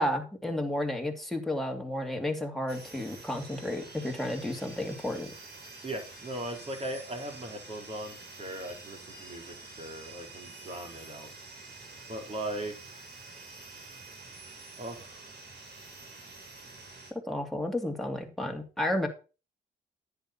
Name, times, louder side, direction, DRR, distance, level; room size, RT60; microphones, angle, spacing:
voice 1, 0.0-5.3 17.3-19.1, left 1 dB, ahead, 2 dB, 2.7 m, -32 dB
sound 1, 2.7-17.1, right 3 dB, 55° right, 3.7 m, -48 dB
voice 2, 5.8-11.3 12.1-13.0 14.8-15.3, right 1 dB, 30° right, 2 dB, 4.1 m, -39 dB
10.0 x 8.7 x 4.4 m, 0.33 s
cardioid pair, 90°, 20 cm